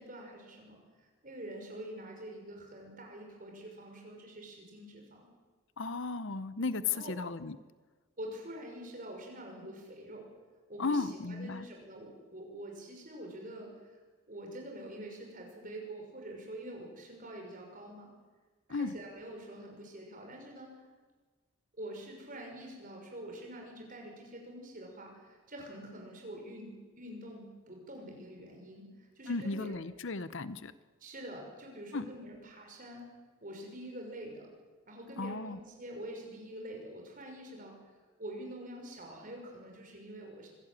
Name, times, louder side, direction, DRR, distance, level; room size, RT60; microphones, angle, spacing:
voice 1, 0.0-5.2 6.8-7.1 8.2-10.3 10.7-14.0 14.3-18.1 18.7-20.7 21.8-29.8 31.0-33.0 33.4-34.5 34.9-37.7 38.2-40.5, right 1 dB, 40° right, 1 dB, 5.9 m, -46 dB
voice 2, 5.8-7.6 10.8-11.7 18.7-18.9 29.3-30.7 31.9-32.1 35.2-35.6, left 4 dB, 55° left, 14 dB, 0.8 m, -35 dB
25.0 x 16.5 x 9.0 m, 1.3 s
head